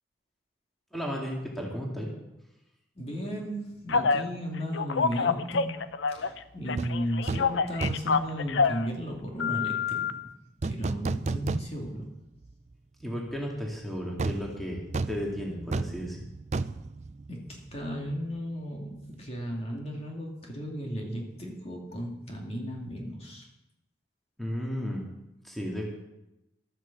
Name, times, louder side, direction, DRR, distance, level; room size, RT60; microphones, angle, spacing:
voice 1, 0.9-2.1 13.0-16.2 24.4-25.1 25.4-25.9, equal, ahead, -2 dB, 2.2 m, -34 dB
voice 2, 3.0-10.0 10.6-12.1 17.3-23.5, equal, 30° left, 0 dB, 2.4 m, -35 dB
Telephone, 3.9-4.2 4.7-6.4 6.7-8.8 9.4-10.1, left 5 dB, 80° left, 0.6 m, -27 dB
sound 1, 6.8-6.9 7.3-7.5 7.8-8.2 10.6-12.0 12.4-12.5 14.2-17.8 18.1-18.3, right 3 dB, 35° right, 0.4 m, -32 dB
12.5 x 9.4 x 7.1 m, 0.94 s
head